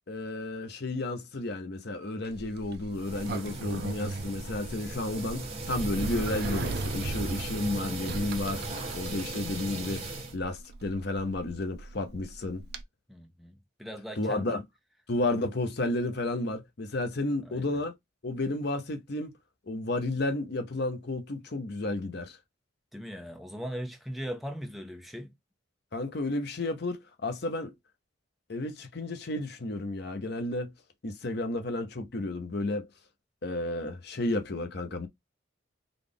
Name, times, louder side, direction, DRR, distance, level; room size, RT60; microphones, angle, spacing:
voice 1, 0.1-8.7 8.9-10.1 10.3-12.7 14.2-14.6 15.1-17.9 18.2-19.3 19.7-22.4 25.9-27.7 28.5-30.7 31.0-32.9 33.4-35.1, left 2 dB, 55° left, 0.7 m, -32 dB
Sliding door, 2.2-12.8, right 3 dB, 55° right, 0.5 m, -38 dB
sound 1, 2.9-10.3, right 3 dB, 30° right, 1.6 m, -38 dB
voice 2, 13.1-14.6 17.4-17.8 22.9-25.3, equal, ahead, 0.5 m, -39 dB
3.9 x 2.4 x 3.4 m
head